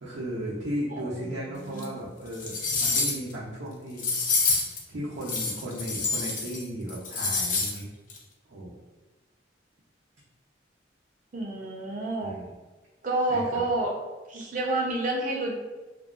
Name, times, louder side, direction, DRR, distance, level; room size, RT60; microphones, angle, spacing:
voice 1, 0.0-2.5 2.8-4.4 4.9-7.9 8.5-8.8 12.2-12.5 13.3-13.6, equal, 90° right, -7 dB, 0.6 m, -35 dB
voice 2, 0.9-2.0 11.3-12.4 13.0-14.0 14.3-15.5, right 2 dB, 45° right, -1 dB, 0.5 m, -29 dB
sound 1, 1.8-1.9 2.3-3.3 4.0-4.8 5.2-6.6 6.9-7.8 8.1-8.2, left 4 dB, 40° left, 0.4 m, -27 dB
2.6 x 2.2 x 2.4 m, 1.2 s
head